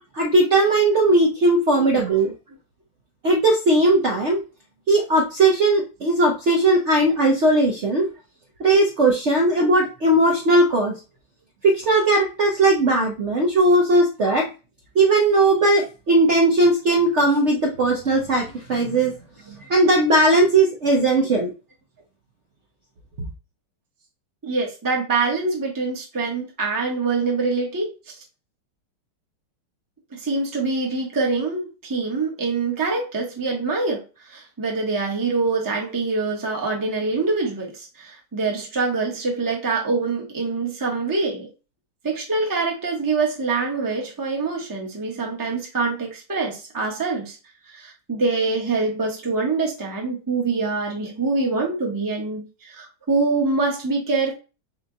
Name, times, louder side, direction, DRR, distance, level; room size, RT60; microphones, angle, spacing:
voice 1, 0.1-2.3 3.2-4.4 4.9-8.1 8.6-11.0 11.6-14.5 14.9-19.1 19.7-21.5, right 2 dB, 75° right, 0 dB, 0.6 m, -18 dB
voice 2, 24.4-27.9 30.1-41.5 42.0-47.4 47.7-54.3, right 3 dB, 20° right, 0 dB, 0.5 m, -25 dB
4.4 x 2.2 x 3.8 m, 0.31 s
omnidirectional pair, 2.3 m